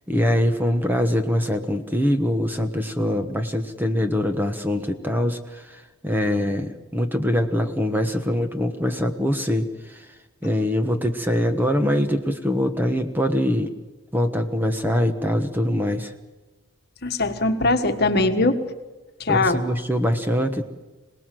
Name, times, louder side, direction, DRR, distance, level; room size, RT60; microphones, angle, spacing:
voice 1, 0.1-10.2 10.4-13.7 14.1-16.1 19.3-20.7, equal, 10° right, 6 dB, 1.2 m, -23 dB
voice 2, 17.0-18.6 19.2-19.7, left 2 dB, 50° left, 7 dB, 1.6 m, -21 dB
26.5 x 19.0 x 7.7 m, 1.2 s
head